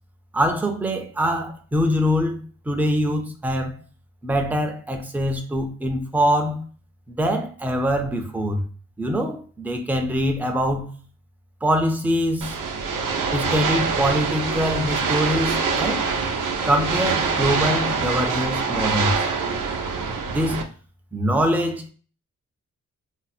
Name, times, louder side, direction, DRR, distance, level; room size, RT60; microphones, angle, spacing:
voice 1, 0.3-2.4 2.7-3.8 4.2-6.6 7.1-8.6 9.0-10.9 11.6-12.6 13.3-16.0 16.6-19.2 20.3-20.6 21.1-21.8, equal, 5° right, 0.4 m, -23 dB
sound 1, 12.4-20.6, right 5 dB, 85° right, 0.6 m, -24 dB
2.7 x 2.0 x 4.0 m
wide cardioid pair, 130°, 31 cm